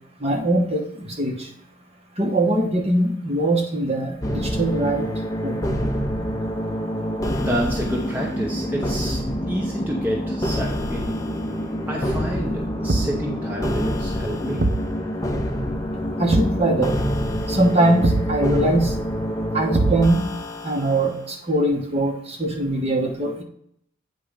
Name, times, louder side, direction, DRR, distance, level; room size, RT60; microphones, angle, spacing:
voice 1, 0.2-1.5 2.2-5.1 5.4-5.6 16.2-17.0 17.5-18.9 19.5-20.2 20.6-23.4, right 1 dB, 30° right, 1 dB, 1.0 m, -22 dB
sound 1, 4.2-21.1, equal, 15° left, 0.5 m, -26 dB
voice 2, 7.4-11.2 11.9-14.7, equal, 10° right, -2 dB, 0.8 m, -29 dB
Thump thud, 12.9-13.3 14.6-14.9 16.3-16.6 18.0-18.4 19.7-20.3, right 2 dB, 50° right, 0.6 m, -22 dB
8.5 x 3.1 x 4.9 m, 0.68 s
head